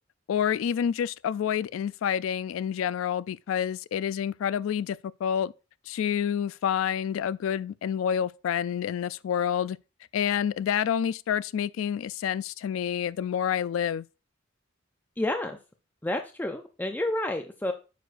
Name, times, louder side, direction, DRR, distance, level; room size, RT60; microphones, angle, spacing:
voice 1, 0.3-5.5 5.9-9.8 10.1-14.0, left 8 dB, 85° left, 0.3 m, -28 dB
voice 2, 15.2-15.6 16.0-17.7, left 1 dB, 10° left, 0.5 m, -30 dB
9.3 x 6.3 x 2.5 m
head